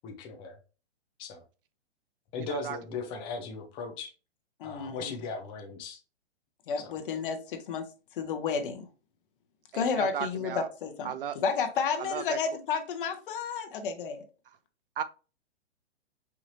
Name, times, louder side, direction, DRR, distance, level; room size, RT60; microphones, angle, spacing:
voice 1, 0.0-0.6 1.2-1.4 2.3-4.1 4.6-6.0 6.8-6.9, left 4 dB, 15° left, 0.5 m, -38 dB
voice 2, 2.4-2.8 9.7-10.7 11.0-11.3 12.0-12.4 15.0-15.1, right 9 dB, 55° right, 0.5 m, -35 dB
voice 3, 4.6-5.2 6.7-7.9 8.2-8.9 9.7-14.2, left 5 dB, 50° left, 1.0 m, -31 dB
4.8 x 2.8 x 2.7 m
hypercardioid pair, 145°, 34 cm